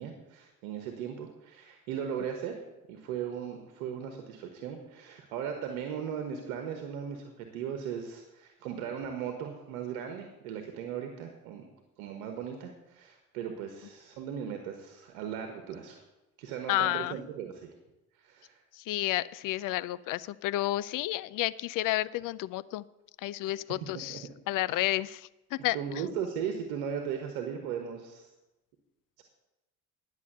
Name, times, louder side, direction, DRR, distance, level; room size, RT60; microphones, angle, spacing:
voice 1, 0.0-2.5 2.9-11.7 12.0-16.0 16.4-17.7 18.2-18.6 23.4-23.5 24.1-24.2 24.7-24.8 25.7-28.3 29.2-29.3, right 8 dB, 75° right, 4 dB, 1.3 m, -37 dB
voice 2, 16.7-17.2 18.8-22.8 23.2-25.8, left 16 dB, 50° left, 19 dB, 0.5 m, -31 dB
11.0 x 7.0 x 6.8 m, 0.97 s
hypercardioid pair, 60°, 41 cm